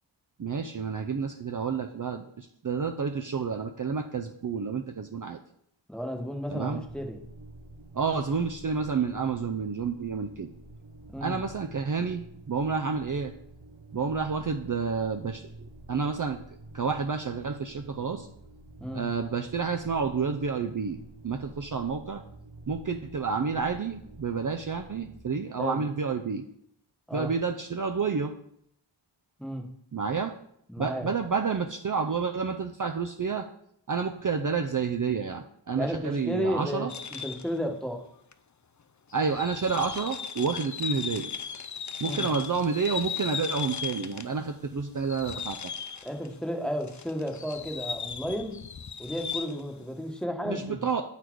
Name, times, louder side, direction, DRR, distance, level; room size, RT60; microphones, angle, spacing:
voice 1, 0.4-5.4 6.5-6.8 7.9-10.5 11.2-13.3 13.9-16.4 16.7-18.3 18.9-21.0 21.2-22.2 22.7-26.4 27.1-28.3 29.9-30.4 30.8-33.5 33.9-36.9 39.1-41.3 42.0-45.7 50.5-51.0, right 5 dB, 45° right, 5 dB, 0.5 m, -30 dB
voice 2, 5.9-7.2 11.1-11.4 18.8-19.0 25.6-25.8 27.1-27.3 29.4-29.6 30.7-31.1 35.7-38.0 42.0-42.3 46.0-48.6 49.0-50.9, equal, ahead, 2 dB, 1.2 m, -33 dB
sound 1, 6.7-25.2, right 2 dB, 70° right, 1.0 m, -49 dB
sound 2, 36.9-37.6 38.3-38.4 39.1-44.4 44.7-46.3 46.8-49.7, left 6 dB, 40° left, 0.5 m, -37 dB
8.1 x 4.2 x 4.6 m, 0.71 s
wide cardioid pair, 40°, 47 cm